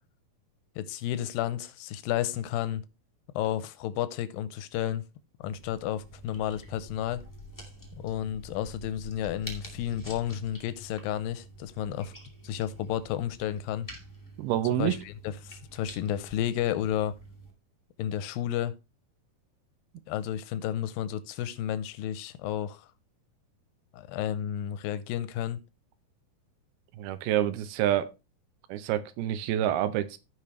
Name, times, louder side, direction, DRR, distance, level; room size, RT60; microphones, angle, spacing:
voice 1, 0.8-2.8 3.4-5.0 5.4-7.2 8.0-12.1 12.4-13.9 14.8-17.2 18.0-18.7 20.1-22.9 23.9-25.6, left 11 dB, 80° left, 2.4 m, -32 dB
sound 1, 5.4-17.5, right 1 dB, 20° left, 0.5 m, -47 dB
voice 2, 14.4-15.0 26.9-28.1 28.7-30.2, right 12 dB, 85° right, 2.7 m, -27 dB
15.5 x 5.3 x 3.2 m
omnidirectional pair, 4.4 m